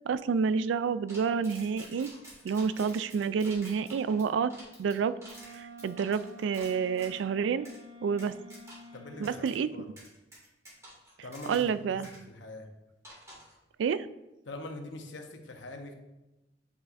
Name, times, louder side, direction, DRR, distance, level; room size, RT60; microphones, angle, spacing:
voice 1, 0.1-2.1 2.4-4.5 4.8-5.1 5.5-7.7 8.0-8.3 9.2-9.7 11.5-12.1 13.8-14.1, right 6 dB, 85° right, 15 dB, 0.3 m, -29 dB
sound 1, 1.1-7.2 7.7-7.8 8.2-9.0 9.2-9.6 10.0-11.8 12.0-12.2 13.0-13.6, equal, 15° right, 2.2 m, -50 dB
Wind instrument woodwind instrument, 5.2-9.6, equal, 60° right, 0.9 m, -50 dB
voice 2, 8.9-9.9 11.2-12.0 12.3-12.7 14.4-15.9, left 2 dB, 80° left, 4 dB, 0.9 m, -43 dB
8.0 x 5.6 x 2.5 m, 1.0 s
head